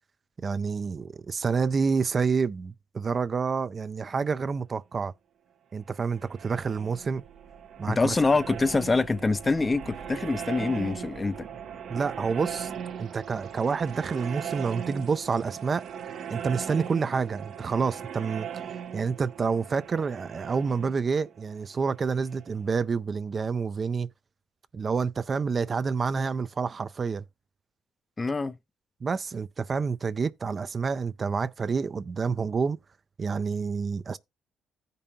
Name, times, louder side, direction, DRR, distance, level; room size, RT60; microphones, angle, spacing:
voice 1, 0.4-5.1 5.7-7.2 7.8-8.1 11.9-12.7 13.0-15.9 16.3-18.5 18.9-24.1 24.7-27.2 29.0-32.8 33.2-34.2, right 5 dB, 40° right, 0.4 m, -28 dB
sound 1, 5.9-22.6, right 8 dB, 70° right, 0.8 m, -39 dB
voice 2, 7.8-11.5 28.2-28.6, left 3 dB, 25° left, 0.5 m, -25 dB
15.0 x 5.3 x 2.7 m
cardioid pair, 90°, 0 cm